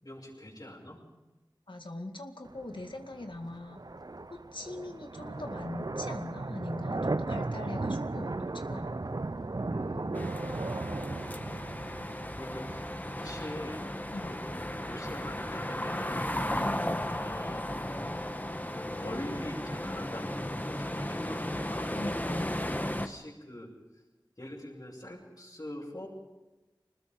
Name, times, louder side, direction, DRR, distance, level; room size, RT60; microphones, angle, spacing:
voice 1, 0.0-1.0 9.7-10.4 12.3-12.9 13.2-13.9 14.2-16.4 17.0-17.7 18.7-22.0 22.7-23.7 24.4-26.1, left 1 dB, 50° left, -7 dB, 7.1 m, -43 dB
voice 2, 1.7-3.8 4.3-8.9 12.6-12.8 14.1-14.3 16.6-17.0 22.0-22.6, left 2 dB, 85° left, 5 dB, 2.1 m, -41 dB
sound 1, 2.4-16.4, right 2 dB, 55° right, 0.6 m, -37 dB
sound 2, 10.1-23.1, left 1 dB, 20° left, 1.4 m, -35 dB
26.0 x 20.0 x 5.5 m, 1.1 s
wide cardioid pair, 40°, 8 cm